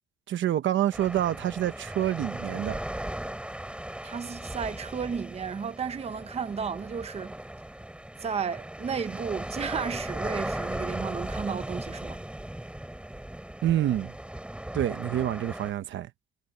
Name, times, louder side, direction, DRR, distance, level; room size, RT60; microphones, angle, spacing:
voice 1, 0.3-2.8 13.6-14.1 14.7-16.1, right 12 dB, 65° right, 1.1 m, -27 dB
sound 1, 0.9-15.7, right 1 dB, 5° right, 4.4 m, -37 dB
voice 2, 4.0-7.3 8.2-12.2, right 6 dB, 30° right, 0.8 m, -33 dB
cardioid pair, 125°, 21 cm